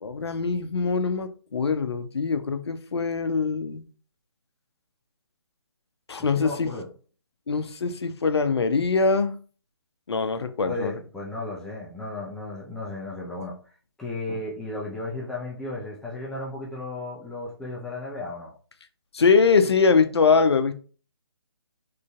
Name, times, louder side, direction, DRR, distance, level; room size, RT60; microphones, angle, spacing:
voice 1, 0.0-3.8 6.1-6.7 7.5-9.4 10.1-10.9 19.1-20.7, left 4 dB, 70° left, 10 dB, 0.6 m, -23 dB
voice 2, 6.2-6.9 10.6-18.5, left 2 dB, 5° left, -5 dB, 0.4 m, -34 dB
3.8 x 3.2 x 2.3 m, 0.40 s
figure-of-eight pair, 145°, 14 cm